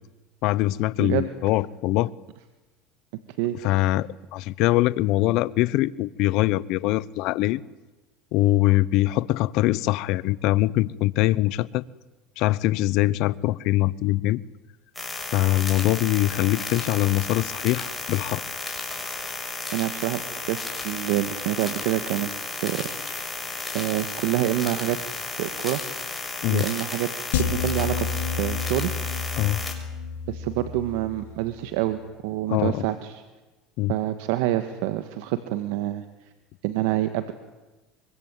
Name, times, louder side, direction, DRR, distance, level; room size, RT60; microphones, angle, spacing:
voice 1, 0.4-2.1 3.6-7.6 8.3-11.8 12.4-14.4 15.3-18.4 26.4-26.6 29.4-29.6 32.5-32.8 33.8-33.9, left 17 dB, 65° left, 20 dB, 0.9 m, -23 dB
sound 1, 14.9-29.7, left 3 dB, 15° left, 6.2 m, -33 dB
voice 2, 19.7-20.2 20.5-22.3 22.6-23.3 23.7-25.0 25.4-25.8 26.5-27.1 27.4-28.1 28.4-28.9 30.3-33.2 33.9-36.0 36.6-37.3, right 14 dB, 80° right, 10 dB, 1.7 m, -27 dB
sound 2, 27.3-31.7, left 6 dB, 85° left, 2.6 m, -30 dB
24.5 x 24.0 x 9.2 m, 1.1 s
supercardioid pair, 100°, 0 cm